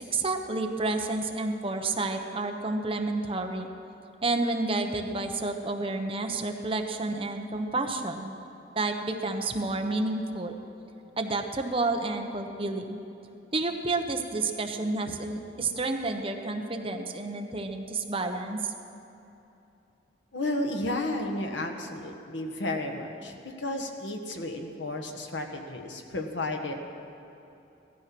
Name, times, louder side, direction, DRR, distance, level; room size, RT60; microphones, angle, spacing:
voice 1, 0.0-3.7 4.2-8.4 8.7-10.5 11.2-13.0 13.5-18.7, right 2 dB, 30° right, 4 dB, 1.0 m, -30 dB
voice 2, 20.3-26.7, left 1 dB, 75° left, 4 dB, 1.5 m, -32 dB
17.0 x 13.0 x 6.1 m, 2.9 s
head